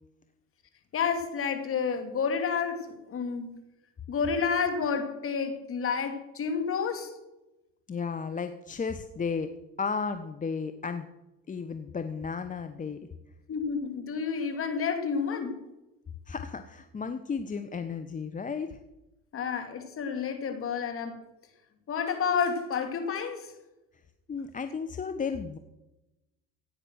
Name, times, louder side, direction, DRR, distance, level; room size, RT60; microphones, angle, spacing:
voice 1, 0.9-3.5 4.1-7.1 13.5-15.6 19.3-21.2 21.9-23.5, left 6 dB, 45° left, 6 dB, 2.9 m, -30 dB
voice 2, 7.9-9.5 9.8-11.1 11.5-13.0 16.3-18.8 24.3-25.6, left 5 dB, 25° left, 9 dB, 1.0 m, -33 dB
16.0 x 8.9 x 6.3 m, 0.98 s
supercardioid pair, 85°, 31 cm